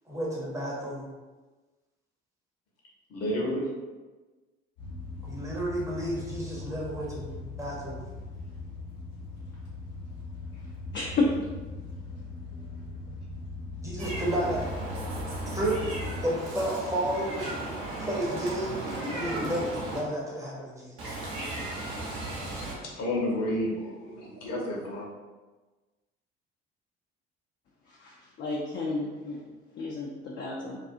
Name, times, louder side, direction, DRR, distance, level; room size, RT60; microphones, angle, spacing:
voice 1, 0.1-1.0 5.2-8.0 13.8-14.7 15.4-15.8 16.2-17.6 18.0-21.1, right 1 dB, 10° right, -5 dB, 0.7 m, -32 dB
voice 2, 3.1-3.7 22.9-25.1, left 1 dB, 50° left, -4 dB, 0.9 m, -30 dB
sound 1, 4.8-16.3, left 2 dB, 75° left, 1.0 m, -39 dB
voice 3, 10.9-11.3 28.0-29.4 29.8-30.8, left 3 dB, 35° left, -3 dB, 0.4 m, -31 dB
Meow, 14.0-20.0 21.0-22.7, right 1 dB, 60° right, 0.8 m, -36 dB
2.4 x 2.3 x 2.5 m, 1.2 s
figure-of-eight pair, 55°, 33 cm